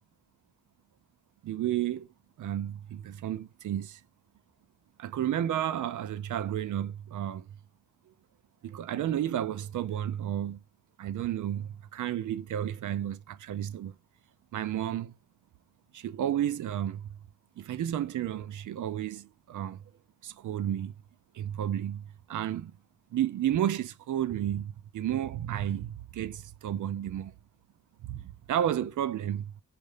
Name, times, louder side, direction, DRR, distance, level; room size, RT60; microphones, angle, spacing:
voice 1, 1.4-2.1 2.4-4.0 5.0-7.5 8.6-10.6 11.0-14.0 14.5-15.1 15.9-17.1 17.6-19.8 20.2-20.9 21.3-22.7 23.1-27.3 28.0-29.5, right 11 dB, 90° right, 0.5 m, -32 dB
6.4 x 2.6 x 3.2 m
wide cardioid pair, 115°, 29 cm